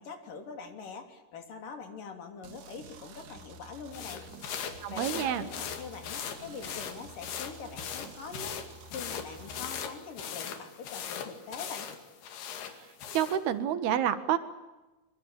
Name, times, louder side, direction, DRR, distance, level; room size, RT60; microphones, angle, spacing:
voice 1, 0.0-4.2 4.9-11.9, left 5 dB, 60° left, 6 dB, 4.7 m, -44 dB
sound 1, 2.4-9.8, right 4 dB, 60° right, 3.6 m, -50 dB
sound 2, 3.9-13.4, left 8 dB, 90° left, 4.3 m, -40 dB
voice 2, 4.8-5.5 13.1-14.4, right 10 dB, 80° right, 11 dB, 3.6 m, -28 dB
26.0 x 24.5 x 8.6 m, 1.1 s
omnidirectional pair, 4.4 m